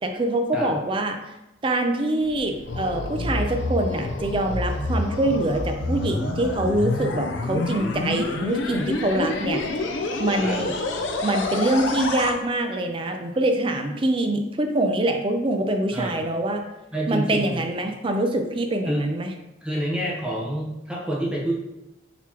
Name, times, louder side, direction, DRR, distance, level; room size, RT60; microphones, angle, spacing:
voice 1, 0.0-1.2 1.6-9.6 10.2-10.8 11.2-16.6 17.1-19.3, right 1 dB, 30° right, 4 dB, 0.4 m, -24 dB
sound 1, 2.2-12.3, left 2 dB, 80° left, 0.5 m, -28 dB
voice 2, 16.9-17.6 18.9-19.0 19.6-21.5, right 1 dB, 5° right, -4 dB, 0.8 m, -27 dB
4.0 x 2.9 x 4.5 m, 0.94 s
head